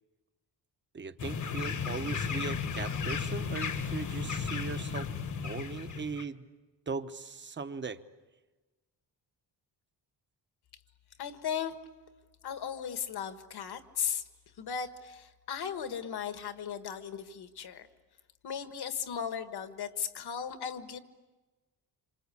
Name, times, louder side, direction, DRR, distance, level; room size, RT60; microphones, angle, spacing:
voice 1, 0.9-5.1 5.4-6.5 6.9-8.0, right 4 dB, 25° right, 10 dB, 0.9 m, -39 dB
sound 1, 1.2-6.2, left 6 dB, 45° left, 1.3 m, -34 dB
voice 2, 11.2-11.7 12.4-14.2 14.6-17.9 18.4-21.0, left 8 dB, 65° left, 9 dB, 1.6 m, -36 dB
27.0 x 26.0 x 8.6 m, 1.2 s
wide cardioid pair, 170°, 42 cm